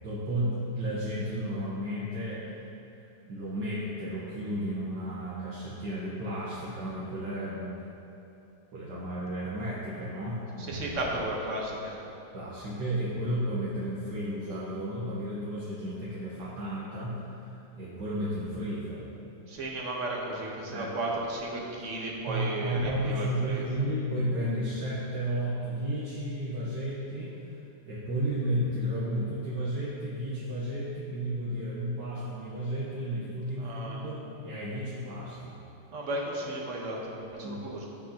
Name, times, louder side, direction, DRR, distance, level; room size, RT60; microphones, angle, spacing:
voice 1, 0.0-2.4 3.2-7.7 8.7-10.8 12.3-19.1 20.7-20.9 22.3-27.3 27.9-35.6 37.4-37.6, equal, 70° right, -8 dB, 1.9 m, -33 dB
voice 2, 10.6-12.0 19.5-23.9 33.6-34.1 35.9-37.9, right 1 dB, 45° right, -2 dB, 1.5 m, -34 dB
16.0 x 6.1 x 2.9 m, 2.8 s
omnidirectional pair, 2.0 m